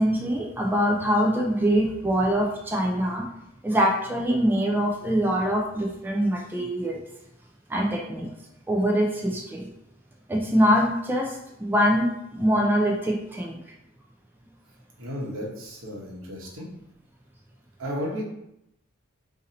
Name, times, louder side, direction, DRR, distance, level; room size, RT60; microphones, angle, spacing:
voice 1, 0.0-3.3 3.6-7.0 7.7-8.3 8.7-9.7 10.3-13.6, equal, 10° right, -1 dB, 0.4 m, -24 dB
voice 2, 15.0-16.7 17.8-18.2, equal, 80° right, -3 dB, 1.0 m, -33 dB
2.8 x 2.7 x 3.9 m, 0.81 s
head